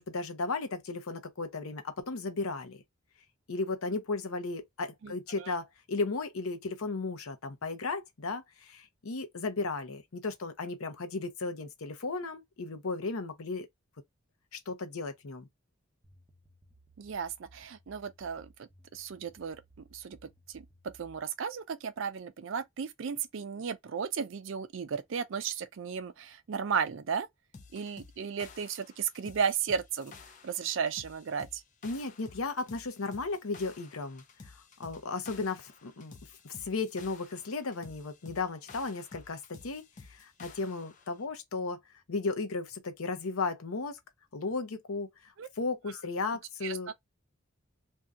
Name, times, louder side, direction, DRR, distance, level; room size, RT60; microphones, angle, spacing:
voice 1, 0.0-2.8 3.5-13.7 14.5-15.5 31.8-36.1 36.4-39.8 40.1-41.8 42.1-44.0 44.3-46.9, left 3 dB, 85° left, 0.7 m, -35 dB
voice 2, 5.0-5.5 17.0-20.2 20.5-20.7 21.0-27.3 27.7-30.1 30.4-31.6 45.4-45.5 46.6-46.9, right 6 dB, 65° right, 0.4 m, -35 dB
sound 1, 16.0-21.2, right 1 dB, 10° right, 0.7 m, -60 dB
sound 2, 27.5-41.1, left 4 dB, 35° left, 0.4 m, -52 dB
2.7 x 2.2 x 3.4 m
head